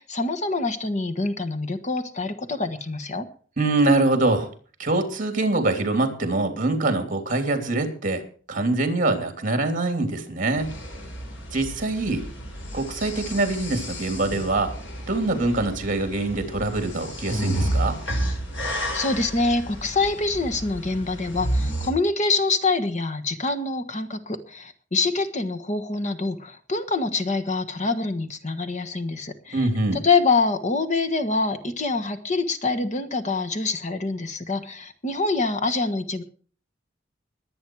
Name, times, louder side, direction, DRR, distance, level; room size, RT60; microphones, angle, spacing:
voice 1, 0.0-3.3 18.9-29.6 30.0-36.2, left 3 dB, 40° left, 7 dB, 1.5 m, -25 dB
voice 2, 3.6-4.5 4.8-8.2 8.5-10.7 11.5-12.2 12.7-14.7 15.1-18.0 29.5-30.0, right 2 dB, 45° right, 7 dB, 3.2 m, -24 dB
sound 1, 10.6-21.9, right 1 dB, 80° left, 6.8 m, -31 dB
21.5 x 8.7 x 4.7 m, 0.42 s
head